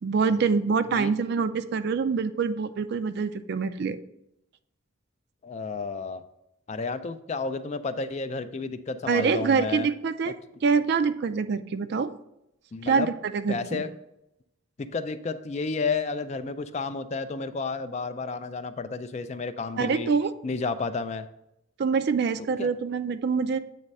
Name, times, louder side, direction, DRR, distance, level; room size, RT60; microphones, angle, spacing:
voice 1, 0.0-4.0 9.1-10.4 10.6-12.1 12.8-13.1 13.3-13.8 19.8-20.3 21.8-23.6, right 5 dB, 55° right, 12 dB, 0.3 m, -25 dB
voice 2, 5.4-6.2 6.7-9.9 10.3-10.4 12.7-13.1 13.5-13.9 14.8-20.1 20.4-21.3 22.6-22.7, left 4 dB, 35° left, 11 dB, 0.3 m, -31 dB
8.3 x 3.2 x 5.3 m, 0.83 s
head